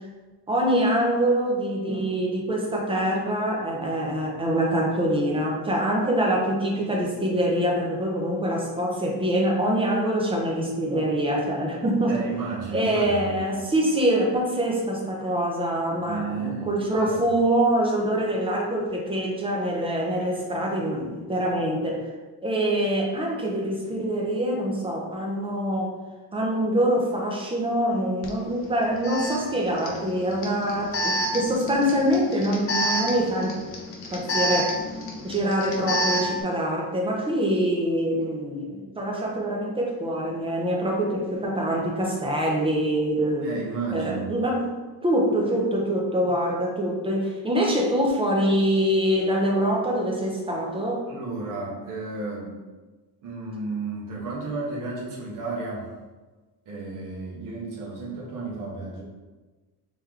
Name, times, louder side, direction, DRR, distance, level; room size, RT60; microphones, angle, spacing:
voice 1, 0.5-12.3 12.7-22.1 22.4-25.9 26.3-33.5 34.1-34.7 35.2-43.5 43.9-44.7 45.0-51.0, right 1 dB, 15° right, -2 dB, 0.5 m, -24 dB
voice 2, 12.1-13.4 16.0-17.3 43.4-44.3 51.1-52.6 53.2-55.9 56.7-59.0, right 3 dB, 50° right, -4 dB, 1.0 m, -33 dB
Alarm, 28.2-28.3 29.0-36.4, equal, 35° left, 0.5 m, -29 dB
3.4 x 3.0 x 3.5 m, 1.3 s
cardioid pair, 180°, 41 cm